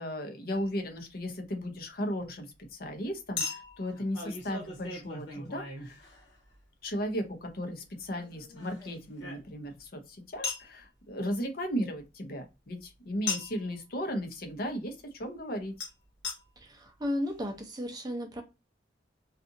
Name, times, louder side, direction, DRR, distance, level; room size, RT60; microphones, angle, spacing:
voice 1, 0.0-6.0 6.8-15.7, equal, 50° left, 0.6 m, -36 dB
Chink clink, 0.5-0.7 3.4-6.5 8.1-9.8 10.4-10.7 13.3-13.7 15.8-15.9 16.2-16.4 17.0-17.1 17.3-17.4, left 4 dB, 85° left, 1.1 m, -38 dB
voice 2, 16.6-18.4, left 1 dB, 20° right, 0.5 m, -34 dB
2.6 x 2.4 x 2.5 m
head